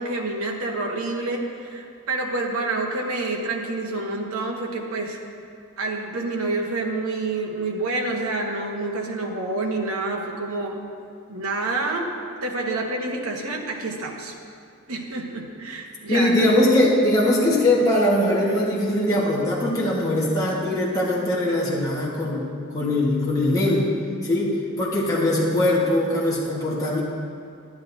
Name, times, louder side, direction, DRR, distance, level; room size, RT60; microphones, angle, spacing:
voice 1, 0.0-5.2 5.8-10.8 11.3-12.1 12.4-14.3 14.9-16.5, right 2 dB, 85° right, 0 dB, 1.2 m, -28 dB
voice 2, 16.1-22.5 22.7-23.9 24.2-24.5 24.8-27.0, left 1 dB, 15° left, -7 dB, 1.4 m, -21 dB
11.5 x 10.5 x 2.7 m, 2.4 s
head